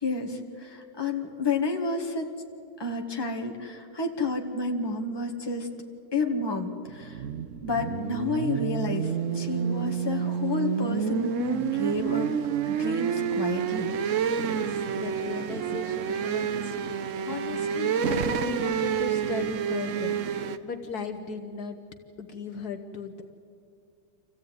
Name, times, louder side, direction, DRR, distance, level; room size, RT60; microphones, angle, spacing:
voice 1, 0.0-2.3 2.8-5.7 6.1-7.2 7.6-12.3 12.7-13.9, left 3 dB, 15° left, 3 dB, 1.6 m, -30 dB
sound 1, 6.9-20.6, right 7 dB, 55° right, 1.0 m, -29 dB
voice 2, 14.4-16.8 17.2-20.1 20.6-21.8 22.2-23.2, left 5 dB, 65° left, 6 dB, 1.4 m, -37 dB
26.5 x 15.0 x 9.3 m, 2.6 s
omnidirectional pair, 1.9 m